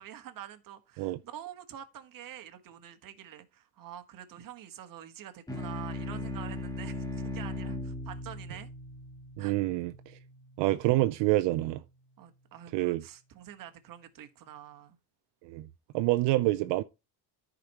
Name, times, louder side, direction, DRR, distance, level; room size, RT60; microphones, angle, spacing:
voice 1, 0.0-8.7 9.4-9.6 12.2-15.0, right 11 dB, 50° right, 1.5 m, -47 dB
sound 1, 5.5-10.3, left 2 dB, 10° left, 1.5 m, -38 dB
voice 2, 9.4-9.9 10.6-11.8 12.7-13.0 15.4-15.7 15.9-16.8, right 17 dB, 85° right, 0.7 m, -27 dB
14.0 x 5.2 x 2.9 m
cardioid pair, 145°, 42 cm